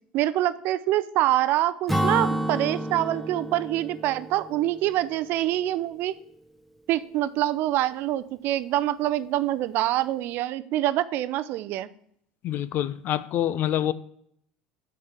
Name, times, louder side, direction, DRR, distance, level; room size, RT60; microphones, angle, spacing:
voice 1, 0.1-6.1 6.9-11.9, right 14 dB, 55° right, 15 dB, 0.6 m, -25 dB
Acoustic guitar / Strum, 1.9-5.5, right 1 dB, 5° left, 1.0 m, -30 dB
voice 2, 12.4-13.9, left 11 dB, 50° left, 16 dB, 0.6 m, -26 dB
6.8 x 6.5 x 7.3 m, 0.68 s
hypercardioid pair, 75°, 4 cm